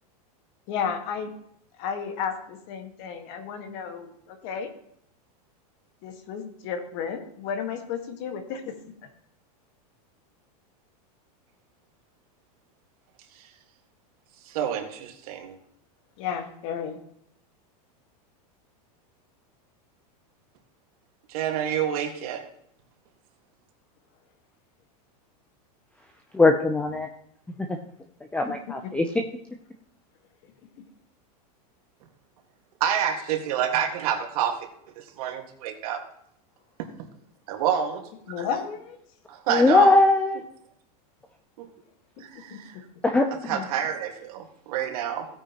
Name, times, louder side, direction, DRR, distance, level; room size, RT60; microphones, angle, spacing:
voice 1, 0.7-1.3 1.8-4.7 6.0-8.7 9.0-9.1 16.2-17.0 28.5-28.9 38.3-39.0 42.2-42.8, left 7 dB, 50° left, 6 dB, 1.6 m, -33 dB
voice 2, 14.4-15.6 21.3-22.4 32.8-34.6 35.0-36.0 36.8-36.9 37.5-38.1 38.4-38.5 39.3-40.0 41.6-41.7 42.2-42.7 43.5-45.3, right 9 dB, 65° right, 4 dB, 1.8 m, -28 dB
voice 3, 26.3-27.1 27.6-27.8 28.3-29.1 39.5-40.4 43.0-43.6, left 2 dB, 5° left, 5 dB, 0.5 m, -20 dB
16.0 x 9.1 x 3.0 m, 0.72 s
supercardioid pair, 145°, 20 cm